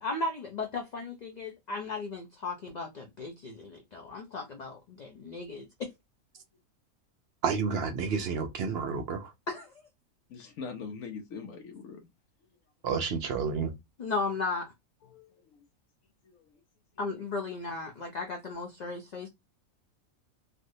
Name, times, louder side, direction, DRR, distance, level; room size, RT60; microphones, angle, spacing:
voice 1, 0.0-5.9 9.5-9.9 14.0-14.7 17.0-19.3, left 3 dB, 45° left, 0.5 m, -36 dB
voice 2, 7.4-9.3 12.8-13.7, right 5 dB, 60° right, 0.7 m, -30 dB
voice 3, 10.3-12.0 15.0-15.6 16.2-16.6, left 5 dB, 75° left, 1.1 m, -43 dB
3.2 x 2.6 x 2.6 m
omnidirectional pair, 1.5 m